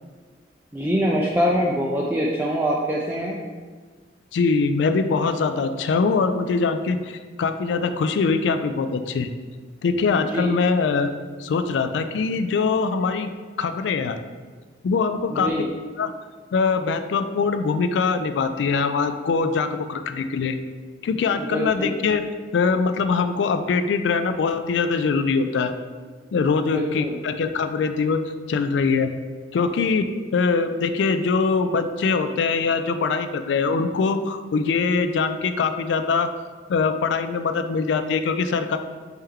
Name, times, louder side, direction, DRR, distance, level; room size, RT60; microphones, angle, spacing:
voice 1, 0.7-3.4 10.1-10.5 15.3-15.7 21.4-22.0 26.6-27.2, equal, 10° right, -4 dB, 0.3 m, -24 dB
voice 2, 4.3-7.0 7.4-9.3 9.8-11.1 11.4-13.3 13.6-14.2 14.8-15.5 16.0-16.1 16.5-20.6 21.0-22.2 22.5-25.7 26.3-28.2 28.5-29.1 29.5-36.3 36.7-38.8, left 4 dB, 75° left, 9 dB, 0.3 m, -22 dB
4.3 x 3.4 x 3.6 m, 1.5 s
head